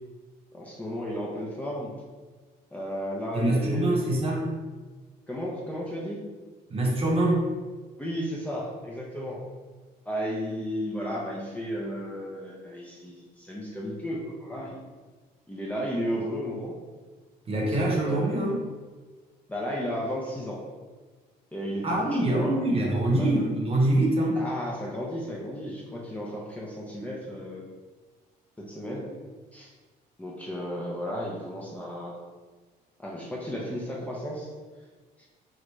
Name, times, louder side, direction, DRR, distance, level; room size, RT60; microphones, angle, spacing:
voice 1, 0.5-1.9 2.7-4.1 5.3-6.2 8.0-9.4 10.1-14.8 15.5-16.8 17.7-17.8 18.1-18.5 19.5-20.7 21.5-22.6 23.2-23.3 24.3-27.6 28.6-29.1 29.5-29.7 30.2-32.2 33.0-34.5, equal, 10° left, -5 dB, 0.5 m, -34 dB
voice 2, 3.3-4.5 6.7-7.5 17.5-18.6 21.8-24.4, right 1 dB, 35° right, -3 dB, 0.8 m, -24 dB
3.2 x 2.5 x 3.1 m, 1.4 s
cardioid pair, 110°, 17 cm